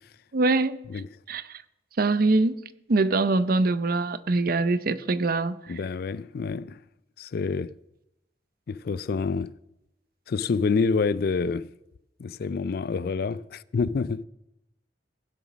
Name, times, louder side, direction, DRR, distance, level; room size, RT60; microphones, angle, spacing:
voice 1, 0.3-0.8 1.3-1.6 2.0-2.6 2.9-5.6, right 3 dB, 50° right, 0.6 m, -23 dB
voice 2, 5.7-6.8 7.2-7.7 8.7-9.5 10.3-11.7 12.2-14.2, left 4 dB, 55° left, 0.4 m, -27 dB
16.0 x 7.3 x 6.2 m
head